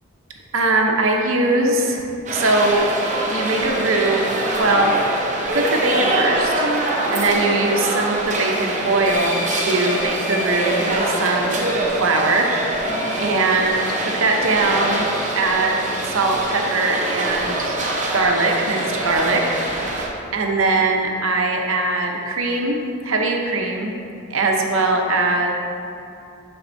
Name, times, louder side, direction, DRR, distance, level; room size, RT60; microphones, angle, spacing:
voice 1, 0.5-2.9 3.3-4.3 4.5-4.9 5.2-15.1 15.3-15.8 16.0-17.8 18.1-23.9 24.3-25.5, right 2 dB, 70° right, 2 dB, 0.7 m, -21 dB
sound 1, 2.3-20.1, right 1 dB, 35° right, 0.8 m, -24 dB
7.7 x 6.0 x 2.6 m, 2.6 s
head